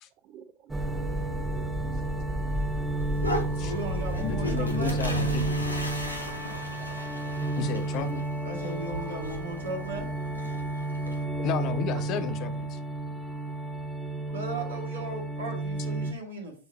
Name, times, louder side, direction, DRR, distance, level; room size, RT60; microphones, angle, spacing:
voice 1, 0.2-2.6 2.9-3.9 4.4-4.7 5.0-5.2 6.8-7.3 8.9-9.6 11.0-12.1 13.2-13.4 14.6-14.9, right 10 dB, 40° right, 0.5 m, -49 dB
sound 1, 0.7-16.1, right 2 dB, 10° right, 1.0 m, -31 dB
sound 2, 3.0-11.2, equal, 85° left, 1.1 m, -37 dB
voice 2, 3.6-5.0 8.4-10.1 14.3-16.5, right 2 dB, 70° right, 2.2 m, -36 dB
voice 3, 4.1-5.4 7.6-8.3 11.4-12.8, left 7 dB, 40° left, 0.8 m, -33 dB
9.4 x 3.9 x 2.8 m
figure-of-eight pair, 90°, 0 cm